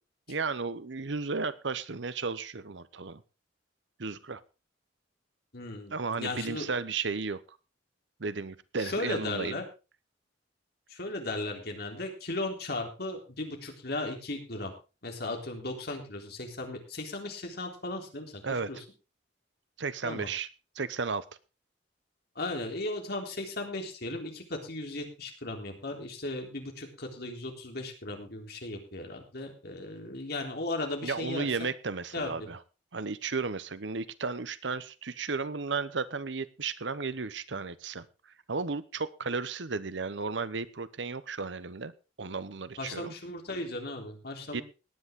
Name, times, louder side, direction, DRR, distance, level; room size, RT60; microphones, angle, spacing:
voice 1, 0.3-3.2 4.0-4.4 5.9-7.4 8.2-9.6 18.4-18.7 19.8-20.5 20.8-21.2 31.0-32.6 32.9-38.1 38.5-41.9 42.2-43.1 44.5-44.6, right 4 dB, 75° right, 16 dB, 0.9 m, -34 dB
voice 2, 5.5-6.7 8.8-9.6 10.9-14.7 15.0-18.8 20.0-20.3 22.4-31.7 32.1-32.5 42.8-44.6, left 2 dB, 60° left, 3 dB, 3.6 m, -36 dB
18.0 x 10.0 x 3.7 m, 0.31 s
head